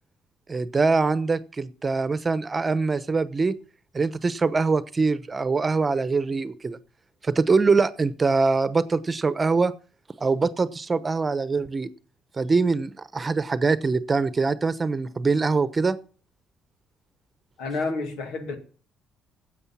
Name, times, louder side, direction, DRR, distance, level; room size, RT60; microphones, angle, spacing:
voice 1, 0.5-3.5 3.9-6.8 7.2-9.7 10.2-11.9 12.4-16.0, right 4 dB, 30° right, 1.0 m, -23 dB
voice 2, 17.6-18.6, left 3 dB, 80° left, 2.2 m, -29 dB
9.8 x 8.1 x 7.4 m
supercardioid pair, 60°, 0 cm